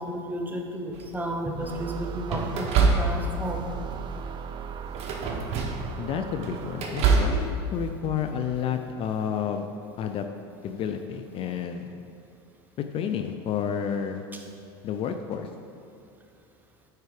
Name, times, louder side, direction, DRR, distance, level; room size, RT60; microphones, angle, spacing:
voice 1, 0.0-3.7 14.3-14.4, equal, 10° right, 2 dB, 1.0 m, -33 dB
sound 1, 0.9-1.4 2.3-3.5 3.9-4.2 4.9-5.9 6.3-7.4, right 4 dB, 50° right, 1.1 m, -25 dB
sound 2, 1.5-7.2, right 6 dB, 35° right, 0.4 m, -38 dB
voice 2, 6.0-9.7 10.0-10.3 10.6-11.9 12.9-14.2 14.8-15.5, left 8 dB, 40° left, 7 dB, 0.5 m, -30 dB
9.2 x 4.6 x 4.9 m, 2.5 s
supercardioid pair, 100°, 14 cm